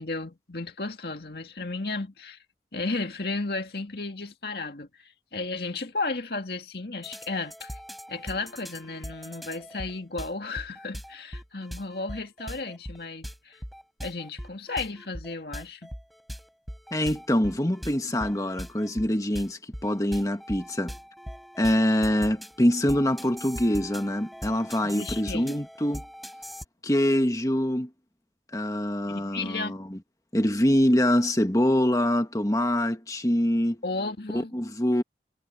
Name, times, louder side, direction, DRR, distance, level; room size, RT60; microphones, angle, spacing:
voice 1, 0.0-2.4 2.7-7.8 8.1-13.6 14.0-15.9 24.8-25.6 29.1-29.8 33.8-34.5, left 3 dB, 60° left, 2.1 m, -34 dB
sound 1, 7.0-26.6, equal, ahead, 4.4 m, -41 dB
voice 2, 16.9-20.9 21.6-26.0 26.8-27.9 28.5-30.0 30.3-33.8 34.3-35.0, left 1 dB, 20° left, 1.6 m, -24 dB
head